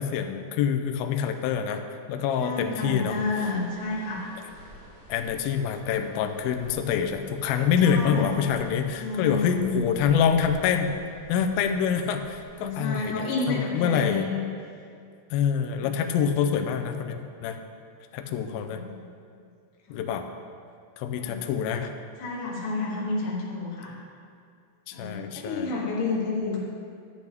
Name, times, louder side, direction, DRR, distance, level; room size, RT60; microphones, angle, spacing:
voice 1, 0.0-1.8 2.1-3.2 5.1-11.0 11.3-14.3 15.3-17.6 18.1-18.8 19.9-20.3 21.0-21.9 24.9-25.7, left 7 dB, 85° left, 6 dB, 2.2 m, -26 dB
voice 2, 2.4-4.3 7.8-8.6 9.0-9.8 12.5-14.5 18.7-18.9 19.9-20.0 21.1-21.4 22.2-23.9 24.9-26.6, left 3 dB, 60° left, -4 dB, 2.7 m, -30 dB
sound 1, 3.0-12.9, equal, 10° left, 1.5 m, -49 dB
12.0 x 8.3 x 3.5 m, 2.3 s
omnidirectional pair, 4.8 m